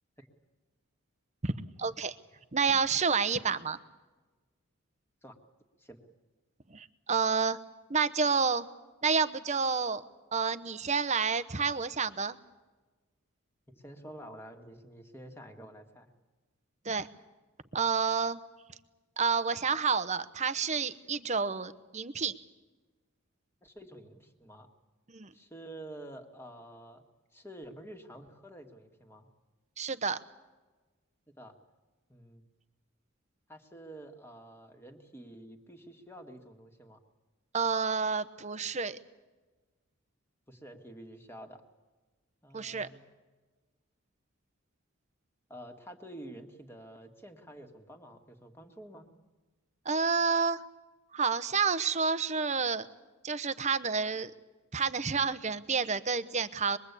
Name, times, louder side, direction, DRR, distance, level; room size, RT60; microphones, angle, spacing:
voice 1, 1.8-2.1 2.5-3.8 6.7-7.6 7.9-8.7 9.0-10.0 10.3-12.4 16.8-17.1 17.7-18.4 19.2-22.3 25.1-25.3 29.8-30.2 37.5-39.0 42.5-42.9 49.9-50.6 51.1-52.9 53.2-54.3 54.7-56.8, right 5 dB, 35° right, 13 dB, 0.9 m, -29 dB
voice 2, 13.7-16.1 23.6-24.7 25.3-27.0 27.3-29.3 31.4-31.5 32.1-32.4 33.5-37.0 40.5-41.6 42.4-43.0 45.5-49.1, right 1 dB, 10° left, 4 dB, 2.0 m, -49 dB
25.5 x 22.0 x 8.4 m, 1.2 s
head